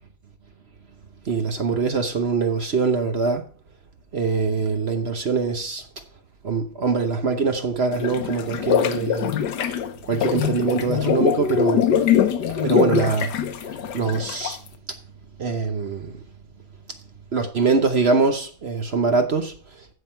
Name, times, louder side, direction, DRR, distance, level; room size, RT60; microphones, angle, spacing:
voice 1, 1.3-3.4 4.1-5.8 6.4-9.3 10.1-11.8 12.6-13.3 13.9-14.6 15.4-16.1 17.3-19.5, right 4 dB, 45° right, 0.9 m, -23 dB
sound 1, 7.9-14.7, left 9 dB, 70° left, 1.4 m, -23 dB
15.0 x 5.9 x 4.4 m
omnidirectional pair, 2.0 m